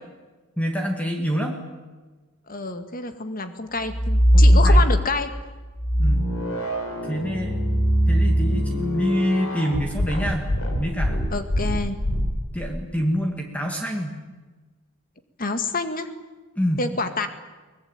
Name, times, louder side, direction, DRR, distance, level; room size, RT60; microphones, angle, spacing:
voice 1, 0.6-1.6 4.3-4.8 6.0-6.3 7.0-7.6 8.1-10.5 10.8-11.3 12.5-14.2 16.6-16.9, equal, 5° left, 2 dB, 2.2 m, -26 dB
voice 2, 2.5-5.3 11.3-12.0 15.4-16.1 16.8-17.3, left 3 dB, 40° left, 8 dB, 2.0 m, -27 dB
sound 1, 3.9-5.3 5.8-12.7, equal, 75° left, 5.4 m, -21 dB
23.0 x 20.5 x 9.0 m, 1.3 s
head